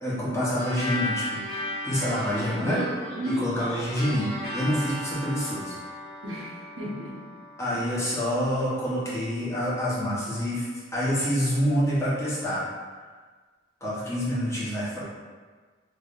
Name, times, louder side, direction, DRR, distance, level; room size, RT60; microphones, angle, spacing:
voice 1, 0.0-1.4 1.8-2.8 3.2-5.7 7.6-10.7 10.9-12.6 13.8-15.0, equal, 15° left, -9 dB, 0.9 m, -27 dB
sound 1, 0.6-9.4, left 1 dB, 55° left, 1.2 m, -36 dB
voice 2, 3.1-3.4 6.2-7.2 7.7-7.8, equal, 80° right, -6 dB, 0.8 m, -32 dB
3.4 x 3.1 x 2.4 m, 1.5 s
head